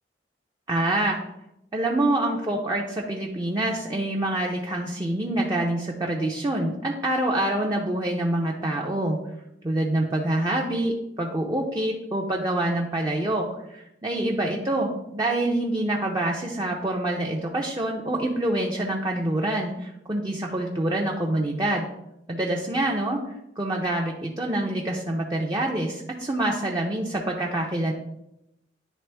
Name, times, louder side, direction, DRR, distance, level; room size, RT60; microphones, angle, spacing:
voice 1, 0.7-1.2 1.7-9.2 9.6-21.8 22.3-23.2 23.6-27.9, right 1 dB, 20° right, -1 dB, 0.6 m, -26 dB
10.0 x 3.5 x 3.4 m, 0.85 s
head